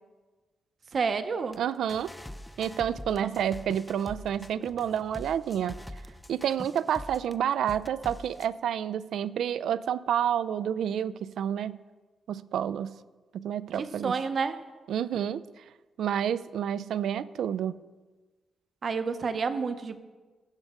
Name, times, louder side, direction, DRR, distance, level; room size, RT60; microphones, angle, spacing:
voice 1, 0.9-1.6 13.8-14.6 18.8-20.0, right 5 dB, 50° right, 10 dB, 0.7 m, -29 dB
sound 1, 1.5-1.6 1.9-7.3 7.7-8.5, left 1 dB, 10° left, 0.4 m, -44 dB
voice 2, 1.6-2.1 2.6-5.8 6.3-11.8 12.3-12.9 13.3-14.2 14.9-15.6 16.0-17.8, right 9 dB, 85° right, 16 dB, 0.3 m, -29 dB
16.0 x 6.4 x 3.6 m, 1.3 s
cardioid pair, 115°, 0 cm